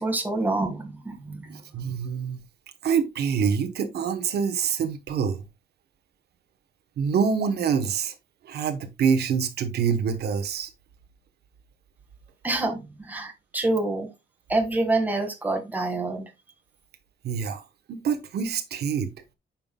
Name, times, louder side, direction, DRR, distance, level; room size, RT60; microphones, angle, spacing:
voice 1, 0.0-1.6 12.4-14.1 14.5-16.2, right 2 dB, 10° right, 1.7 m, -27 dB
voice 2, 1.5-2.4 2.8-5.5 7.0-8.1 8.4-10.7 17.2-19.1, right 6 dB, 75° right, 1.0 m, -26 dB
9.1 x 5.8 x 2.3 m
wide cardioid pair, 165°, 17 cm